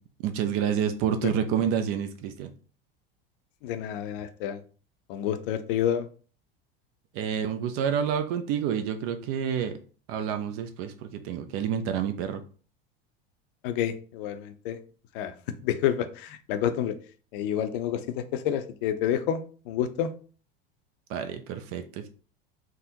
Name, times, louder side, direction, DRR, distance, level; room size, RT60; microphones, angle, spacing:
voice 1, 0.2-2.5 7.2-9.8 10.1-12.4 21.1-22.1, right 8 dB, 50° right, 8 dB, 0.5 m, -28 dB
voice 2, 3.6-4.6 5.1-6.1 13.6-14.8 15.1-15.3 15.6-16.9 17.3-19.4 19.7-20.1, left 10 dB, 65° left, 9 dB, 0.5 m, -29 dB
3.6 x 2.0 x 2.8 m, 0.40 s
hypercardioid pair, 80°, 29 cm